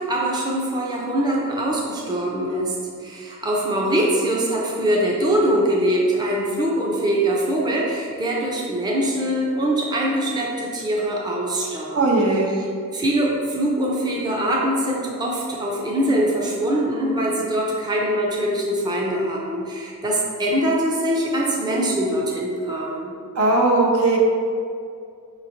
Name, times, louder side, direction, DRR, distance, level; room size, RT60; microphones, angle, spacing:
voice 1, 0.0-2.7 3.0-12.0 12.9-23.1, right 1 dB, 20° right, -3 dB, 0.5 m, -23 dB
voice 2, 11.9-12.5 23.3-24.2, right 2 dB, 75° right, -1 dB, 0.7 m, -18 dB
5.5 x 3.1 x 2.6 m, 2.3 s
head